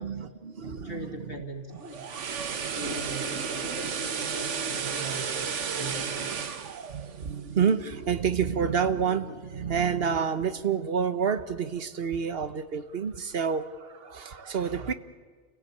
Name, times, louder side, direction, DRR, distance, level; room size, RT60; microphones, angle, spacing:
voice 1, 0.0-1.4 1.7-1.8 6.9-14.9, right 6 dB, 55° right, 11 dB, 1.2 m, -29 dB
voice 2, 0.7-2.0 2.7-5.4 5.7-6.5, right 1 dB, 50° left, 2 dB, 2.5 m, -40 dB
sound 1, 1.7-7.9 8.2-8.4, right 6 dB, 80° right, 1.4 m, -33 dB
28.5 x 16.5 x 8.4 m, 1.5 s
omnidirectional pair, 1.2 m